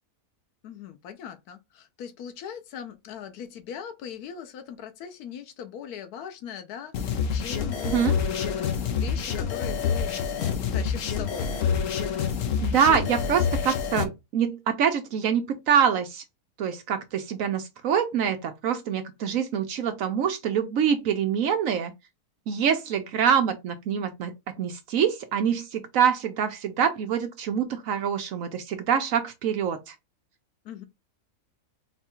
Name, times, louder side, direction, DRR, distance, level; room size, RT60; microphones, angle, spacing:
voice 1, 0.6-8.7 9.0-11.5 30.6-30.8, left 8 dB, 90° left, 1.2 m, -40 dB
sound 1, 6.9-14.0, left 7 dB, 65° left, 1.1 m, -27 dB
voice 2, 7.8-8.2 12.6-16.2 16.6-21.9 22.5-24.3 24.6-29.9, right 8 dB, 70° right, 1.0 m, -25 dB
4.0 x 2.3 x 4.3 m
omnidirectional pair, 1.6 m